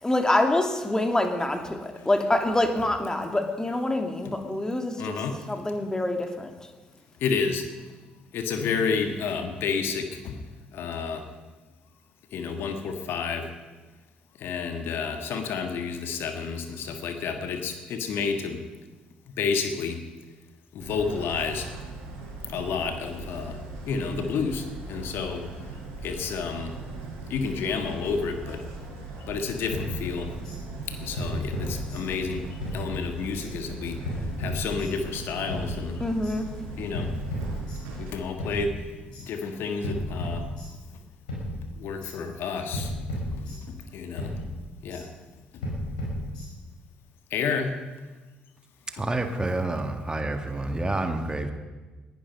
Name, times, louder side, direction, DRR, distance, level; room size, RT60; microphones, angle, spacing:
voice 1, 0.0-5.2 5.5-6.5 36.0-36.5, left 1 dB, 15° left, 5 dB, 2.3 m, -26 dB
voice 2, 5.0-5.4 7.2-7.6 8.3-10.4 10.7-11.2 12.3-13.5 14.4-18.6 19.4-20.0 20.7-21.7 22.4-23.6 23.9-25.4 26.0-26.7 27.3-28.6 29.3-30.3 30.9-32.4 32.7-34.0 34.4-36.0 36.8-37.1 37.9-38.7 39.2-40.5 41.8-44.3 44.8-45.1 45.5-45.6 47.3-47.7, left 5 dB, 60° left, 6 dB, 1.6 m, -30 dB
sound 1, 20.8-38.1, right 3 dB, 75° right, 4.1 m, -39 dB
sound 2, 29.7-30.6 31.2-32.3 32.6-33.5 34.0-35.1 35.5-36.4 36.9-38.1 38.4-39.3 39.8-41.0 41.3-42.1 42.7-43.9 44.2-45.0 45.6-46.8, equal, 80° left, 5.0 m, -34 dB
voice 3, 48.9-51.5, right 2 dB, 20° right, 7 dB, 1.7 m, -28 dB
20.0 x 11.0 x 5.4 m, 1.3 s
figure-of-eight pair, 50°, 4 cm